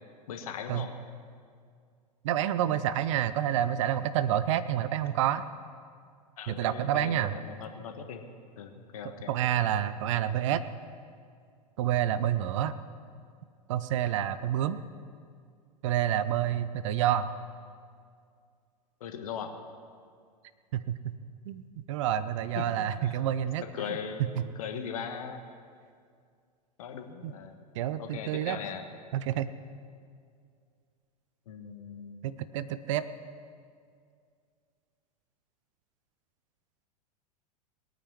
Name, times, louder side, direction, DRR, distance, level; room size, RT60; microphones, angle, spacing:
voice 1, 0.3-0.9 6.4-8.3 8.6-9.4 19.0-19.6 22.6-22.7 23.0-23.2 23.7-24.2 24.5-25.5 26.8-27.6 28.0-28.8 31.5-32.2, left 7 dB, 55° left, 6 dB, 1.4 m, -39 dB
voice 2, 2.2-5.4 6.5-7.3 9.3-10.6 11.8-12.7 13.7-14.8 15.8-17.3 20.7-21.1 21.5-24.0 24.4-24.5 27.2-27.3 27.7-28.6 29.1-29.5 32.2-33.0, right 11 dB, 45° right, 13 dB, 0.6 m, -28 dB
21.0 x 9.2 x 6.1 m, 2.2 s
figure-of-eight pair, 90°, 21 cm